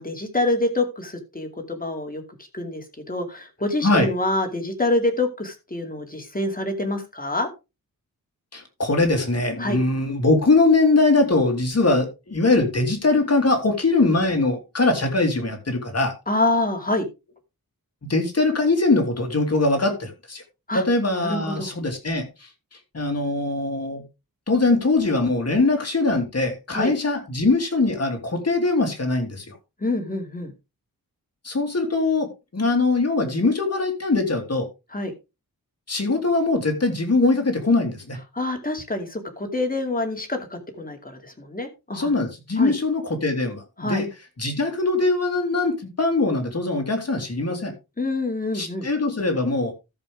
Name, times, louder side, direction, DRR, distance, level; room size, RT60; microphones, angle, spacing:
voice 1, 0.0-2.2 2.5-7.5 9.6-9.8 16.3-17.1 20.7-20.8 21.2-21.7 26.7-26.9 29.8-30.5 34.9-35.1 38.3-42.1 42.6-42.7 43.8-44.0 48.0-48.9, left 2 dB, 25° left, 4 dB, 2.5 m, -26 dB
voice 2, 8.5-16.1 18.0-20.4 20.7-22.2 22.9-24.0 24.5-29.6 31.4-34.7 35.9-38.2 41.9-44.1 44.4-47.7 48.5-49.7, left 3 dB, 45° left, 4 dB, 3.0 m, -22 dB
13.5 x 7.0 x 3.6 m, 0.26 s
wide cardioid pair, 130°, 36 cm